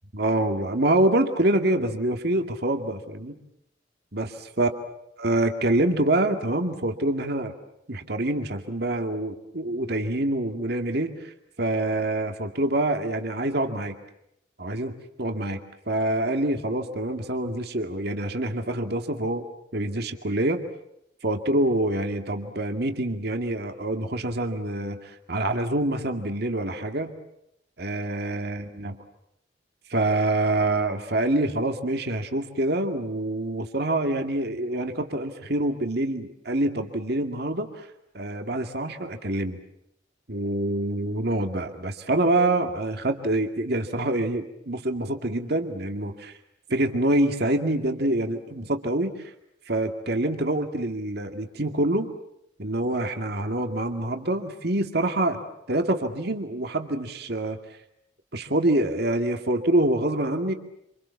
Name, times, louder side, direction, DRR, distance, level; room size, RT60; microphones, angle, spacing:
voice 1, 0.1-3.3 4.1-4.7 5.2-7.5 7.9-11.3 11.6-14.0 14.6-15.6 15.9-19.4 19.7-20.6 21.2-27.1 27.8-29.0 29.9-37.9 38.1-39.6 40.3-46.4 46.7-49.3 49.7-52.1 52.6-55.4 55.7-57.6 58.3-60.5, right 1 dB, 55° right, 5 dB, 2.3 m, -26 dB
27.5 x 27.5 x 7.2 m, 0.78 s
head